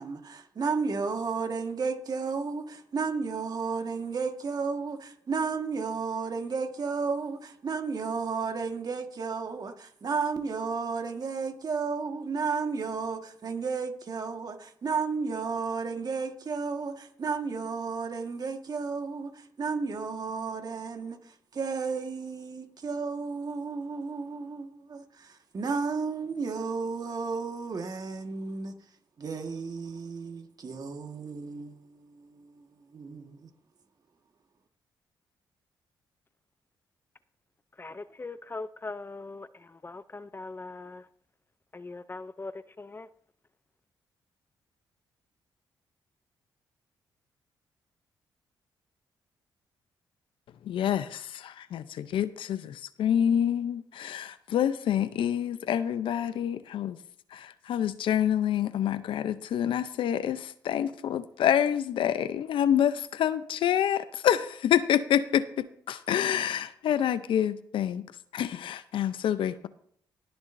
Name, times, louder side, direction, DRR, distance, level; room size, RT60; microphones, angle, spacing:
voice 1, 0.0-21.2 21.5-28.7 29.2-33.5, right 5 dB, 50° right, 1.6 m, -33 dB
voice 2, 37.8-41.0 41.7-42.5 42.8-43.1, left 3 dB, 25° left, 0.5 m, -40 dB
voice 3, 50.6-57.0 57.3-68.0 68.3-69.7, left 10 dB, 75° left, 0.6 m, -27 dB
19.5 x 7.0 x 2.6 m
supercardioid pair, 65°, 9 cm